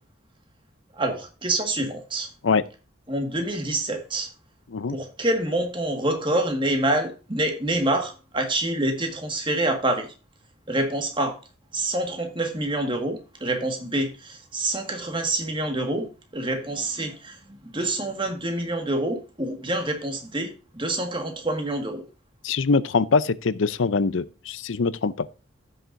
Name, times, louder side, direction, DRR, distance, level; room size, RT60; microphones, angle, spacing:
voice 1, 1.0-2.3 3.1-4.3 4.9-10.1 10.7-11.4 11.7-16.1 16.3-22.0, right 1 dB, 25° right, 1.7 m, -27 dB
voice 2, 22.4-25.3, left 4 dB, 75° left, 0.6 m, -23 dB
15.0 x 6.5 x 2.6 m
head